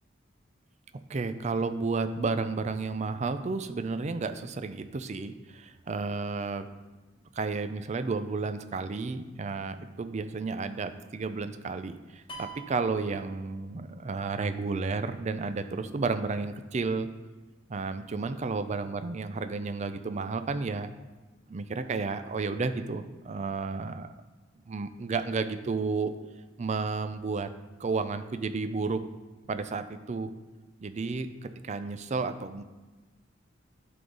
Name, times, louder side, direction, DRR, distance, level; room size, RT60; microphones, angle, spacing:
voice 1, 1.1-6.7 7.3-17.1 17.7-20.9 21.5-24.1 24.7-26.1 26.6-27.5 27.8-29.0 29.5-30.3 30.8-32.6, right 4 dB, 35° right, 10 dB, 0.4 m, -32 dB
sound 1, 12.3-14.0, right 3 dB, 30° left, 1.0 m, -45 dB
10.5 x 3.9 x 3.9 m, 1.2 s
head